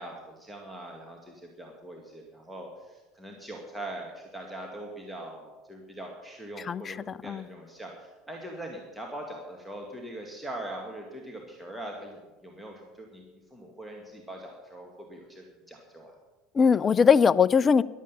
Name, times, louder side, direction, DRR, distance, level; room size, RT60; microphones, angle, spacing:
voice 1, 0.0-7.0 7.2-16.1, right 1 dB, 5° right, 0 dB, 2.0 m, -42 dB
voice 2, 6.7-7.4 16.5-17.8, left 6 dB, 30° left, 20 dB, 0.4 m, -21 dB
15.0 x 11.5 x 5.6 m, 1.2 s
figure-of-eight pair, 65°, 0 cm